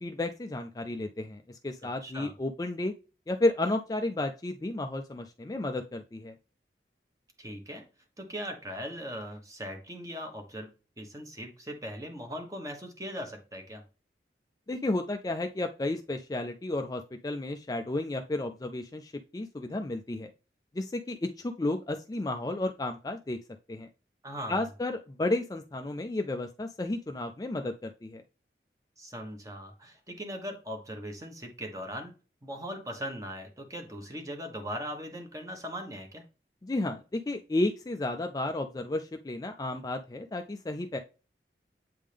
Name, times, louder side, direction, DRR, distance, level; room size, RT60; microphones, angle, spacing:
voice 1, 0.0-2.9 3.3-6.3 14.7-20.3 20.7-23.4 23.7-23.9 24.5-28.2 36.6-41.0, left 2 dB, 20° left, 6 dB, 0.3 m, -32 dB
voice 2, 2.0-2.3 7.4-7.8 8.2-10.7 11.0-13.8 24.2-24.6 29.0-32.1 32.4-36.2, equal, 20° right, 4 dB, 1.1 m, -39 dB
8.4 x 3.6 x 3.3 m, 0.34 s
head